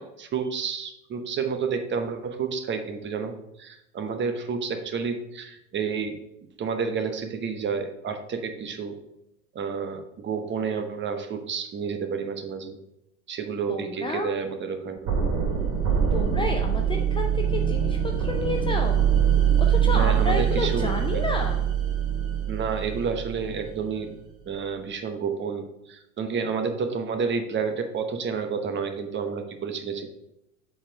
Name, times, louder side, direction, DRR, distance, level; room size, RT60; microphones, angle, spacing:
voice 1, 0.0-6.2 6.6-9.0 9.5-12.8 13.3-15.1 19.9-21.2 22.5-24.1 24.5-30.1, right 5 dB, 25° right, 7 dB, 1.0 m, -30 dB
voice 2, 13.7-14.3 16.1-19.0 19.6-21.6, left 3 dB, 10° left, 3 dB, 0.5 m, -30 dB
sound 1, 15.1-23.9, right 8 dB, 45° right, 2.5 m, -24 dB
7.6 x 4.3 x 4.6 m, 0.85 s
figure-of-eight pair, 80°, 44 cm